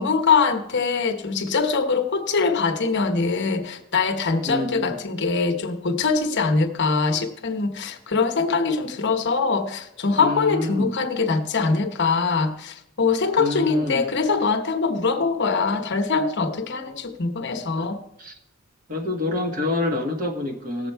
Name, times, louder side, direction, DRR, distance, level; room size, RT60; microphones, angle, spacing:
voice 1, 0.0-18.0, left 4 dB, 55° left, 0.9 m, -23 dB
voice 2, 4.4-5.0 10.2-10.9 13.4-14.1 18.2-18.3 18.9-20.9, left 2 dB, 40° right, 1.7 m, -27 dB
17.5 x 7.2 x 4.5 m
head